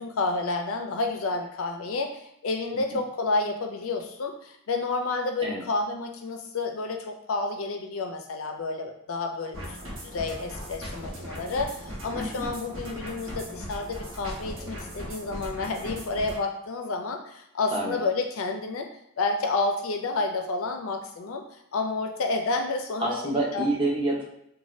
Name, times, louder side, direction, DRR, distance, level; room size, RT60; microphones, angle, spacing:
voice 1, 0.0-9.8 10.0-18.9 19.2-21.4 21.7-23.6, left 3 dB, 85° left, 4 dB, 0.4 m, -30 dB
sound 1, 9.5-16.4, equal, 85° right, 1.0 m, -38 dB
voice 2, 12.1-12.4 17.7-18.0 23.0-24.2, right 2 dB, 25° right, -4 dB, 0.7 m, -28 dB
2.6 x 2.2 x 3.1 m, 0.78 s
head